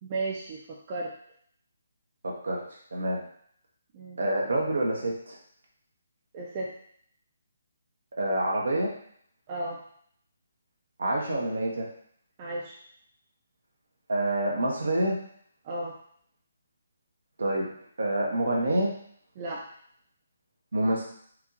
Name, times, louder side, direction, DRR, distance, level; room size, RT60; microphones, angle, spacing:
voice 1, 0.0-1.1 3.9-4.2 6.3-6.7 9.5-9.8 12.4-12.8 15.6-16.0 19.4-19.6, right 2 dB, 30° right, -3 dB, 0.6 m, -34 dB
voice 2, 2.2-2.6 2.9-3.2 4.2-5.4 8.2-8.9 11.0-11.9 14.1-15.2 17.4-17.7 18.0-18.9 20.7-21.0, right 1 dB, 65° right, -1 dB, 1.3 m, -27 dB
4.6 x 2.7 x 3.9 m, 0.64 s
figure-of-eight pair, 140°, 0 cm